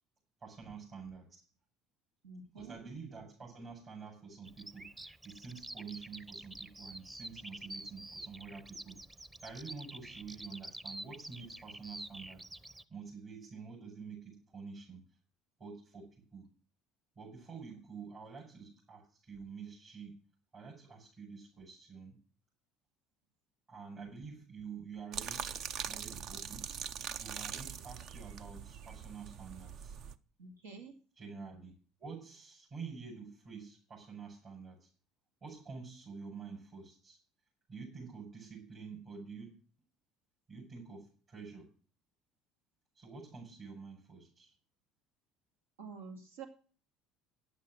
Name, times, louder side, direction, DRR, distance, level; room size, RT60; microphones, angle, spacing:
voice 1, 0.4-1.4 2.5-9.0 9.4-12.4 12.9-15.0 15.6-16.5 17.2-20.2 20.5-22.1 23.7-25.6 25.9-26.7 27.2-30.0 31.2-31.7 32.0-34.9 35.4-37.2 37.7-39.6 40.5-41.7 42.9-44.5, right 5 dB, 45° right, -3 dB, 6.1 m, -48 dB
voice 2, 2.2-2.8 30.4-30.9 45.8-46.5, right 5 dB, 90° right, 3 dB, 2.2 m, -48 dB
Bird vocalization bird call bird song, 4.4-12.8, right 1 dB, 15° right, 0.9 m, -48 dB
sound 1, 25.1-30.1, right 8 dB, 60° right, 0.7 m, -42 dB
10.5 x 8.4 x 7.6 m, 0.40 s
hypercardioid pair, 75°, 0 cm